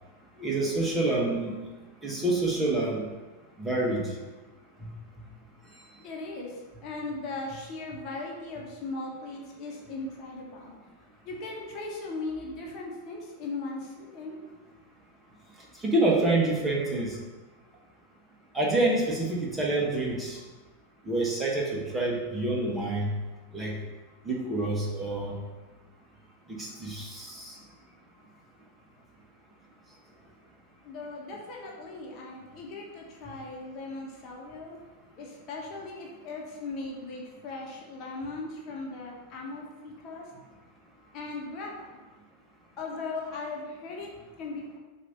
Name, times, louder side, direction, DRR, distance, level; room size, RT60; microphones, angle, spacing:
voice 1, 0.4-1.5 2.0-3.1 3.6-4.1 15.7-17.2 18.5-20.4 21.0-23.1 23.5-23.8 24.2-25.3 26.5-27.6, right 2 dB, 10° right, -3 dB, 1.4 m, -27 dB
voice 2, 6.0-10.7 11.2-14.4 30.8-34.8 35.2-40.3 41.1-42.0 42.8-44.8, left 3 dB, 35° left, -2 dB, 1.3 m, -38 dB
7.7 x 2.8 x 5.8 m, 1.2 s
figure-of-eight pair, 90°, 0 cm